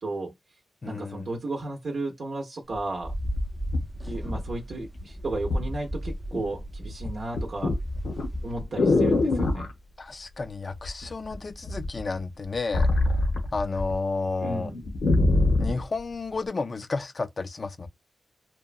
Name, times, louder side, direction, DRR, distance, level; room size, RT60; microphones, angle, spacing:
voice 1, 0.0-0.3 0.8-3.1 4.1-7.7 8.4-9.7 14.4-14.8, right 2 dB, 60° right, 0.6 m, -33 dB
voice 2, 0.8-1.3 10.0-12.9 13.1-14.7 15.6-17.9, left 3 dB, 45° left, 0.4 m, -32 dB
sound 1, 2.7-2.8 3.4-4.9 5.5-5.7 6.1-6.5 6.8-9.7 10.8-11.3 11.7-13.9 14.3-14.4 14.7-15.8 16.5-16.6, left 2 dB, 85° left, 0.8 m, -24 dB
sound 2, 3.0-8.6, equal, 15° right, 0.5 m, -36 dB
2.8 x 2.2 x 2.5 m
cardioid pair, 70°, 0 cm